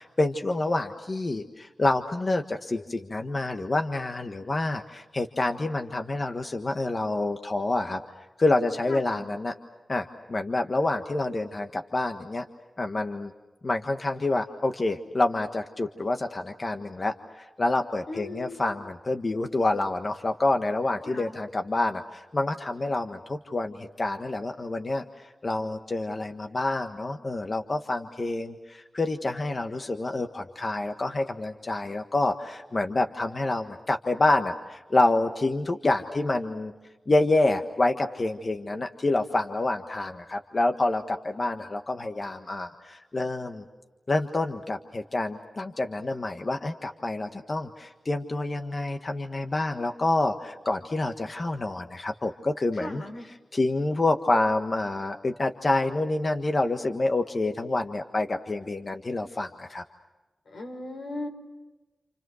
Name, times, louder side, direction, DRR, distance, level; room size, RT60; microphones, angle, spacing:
voice 1, 0.0-8.0 8.4-9.5 9.9-12.4 12.8-13.3 13.6-25.0 25.4-36.7 37.1-43.6 44.1-53.0 53.5-59.8, left 2 dB, 40° left, 5 dB, 1.5 m, -27 dB
voice 2, 8.9-9.3 18.1-18.6 21.0-21.4 52.8-53.2 60.5-61.3, left 2 dB, 90° left, 2 dB, 4.9 m, -37 dB
29.0 x 28.5 x 6.5 m, 1.1 s
wide cardioid pair, 85°, 0 cm